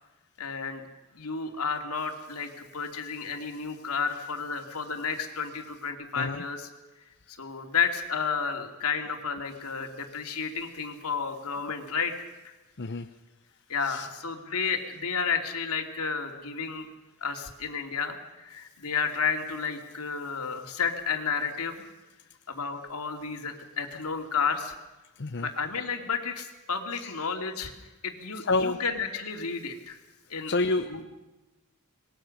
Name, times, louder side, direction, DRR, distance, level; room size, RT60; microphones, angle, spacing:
voice 1, 0.4-0.9 1.1-6.7 7.4-12.1 12.4-12.5 13.7-16.9 17.2-21.9 22.5-24.7 25.4-27.7 28.0-30.0 30.3-30.5 30.9-31.0, left 5 dB, 80° left, 4 dB, 2.7 m, -31 dB
voice 2, 25.2-25.5 27.0-27.1 28.4-28.8 30.5-30.9, left 3 dB, 50° left, 7 dB, 0.8 m, -28 dB
25.5 x 21.0 x 6.6 m, 1.1 s
head